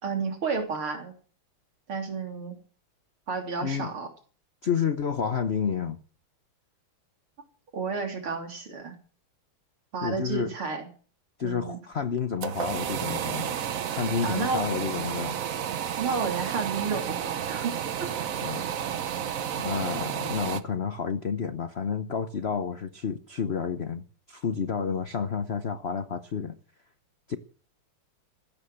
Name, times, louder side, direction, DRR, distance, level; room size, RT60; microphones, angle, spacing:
voice 1, 0.0-1.1 1.9-2.6 3.3-4.1 7.7-9.0 9.9-10.9 11.4-11.8 14.2-14.6 16.0-17.7 18.0-18.1, right 5 dB, 75° right, 4.2 m, -31 dB
voice 2, 3.6-3.9 4.6-6.0 10.0-10.5 11.4-13.6 13.9-15.4 18.4-18.7 19.6-26.6 27.3-27.4, left 6 dB, 70° left, 0.6 m, -30 dB
sound 1, 12.1-20.6, right 9 dB, 55° right, 1.0 m, -31 dB
15.5 x 12.5 x 6.5 m
omnidirectional pair, 2.4 m